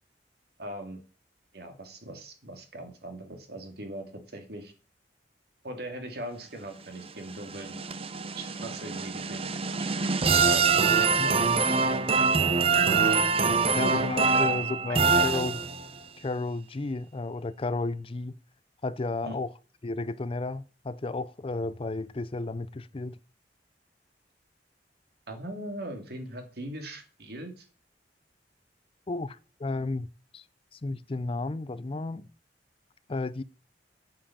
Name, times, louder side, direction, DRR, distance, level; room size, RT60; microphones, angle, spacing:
voice 1, 0.6-1.0 1.5-4.7 5.6-7.8 8.4-9.5 10.0-10.1 10.5-10.8 11.1-11.4 12.6-13.0 13.7-14.0 14.3-14.5 14.9-15.0 19.2-19.4 25.3-27.7, right 1 dB, 65° right, 2.6 m, -40 dB
sound 1, 7.1-16.0, right 4 dB, 35° right, 0.8 m, -25 dB
voice 2, 11.2-11.6 13.7-15.6 16.2-18.4 18.8-19.5 19.8-23.2 29.1-30.1 30.3-30.4 30.7-32.3 33.1-33.4, left 3 dB, 30° left, 0.5 m, -33 dB
8.6 x 7.5 x 7.2 m
head